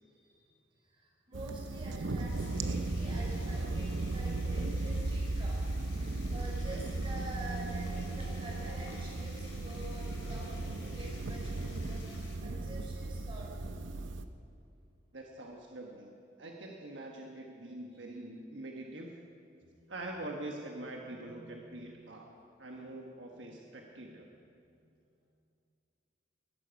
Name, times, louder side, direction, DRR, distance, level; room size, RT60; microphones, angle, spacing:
voice 1, 0.0-5.6 5.9-13.5 18.0-18.1 19.7-19.9 21.2-21.8 23.4-23.5 24.0-24.3 24.7-24.9, right 1 dB, 30° right, -3 dB, 5.1 m, -48 dB
sound 1, 1.3-14.2, right 2 dB, 85° right, 0.8 m, -36 dB
sound 2, 2.3-12.4, left 3 dB, 80° left, 3.7 m, -54 dB
voice 2, 15.1-16.1 16.4-19.2 19.9-22.3 22.6-24.3, right 1 dB, 70° right, 0 dB, 1.4 m, -44 dB
19.5 x 14.0 x 5.2 m, 2.5 s
head